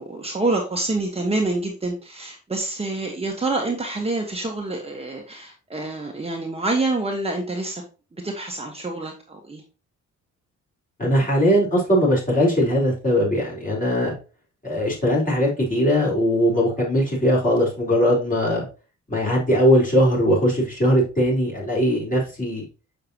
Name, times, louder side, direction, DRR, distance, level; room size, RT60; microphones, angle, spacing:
voice 1, 0.0-7.8 8.1-9.6, right 2 dB, 20° right, 1 dB, 1.2 m, -27 dB
voice 2, 11.0-14.1 14.6-18.7 19.1-22.6, equal, 25° left, -3 dB, 4.3 m, -20 dB
6.7 x 6.6 x 2.9 m, 0.33 s
cardioid pair, 110°, 30 cm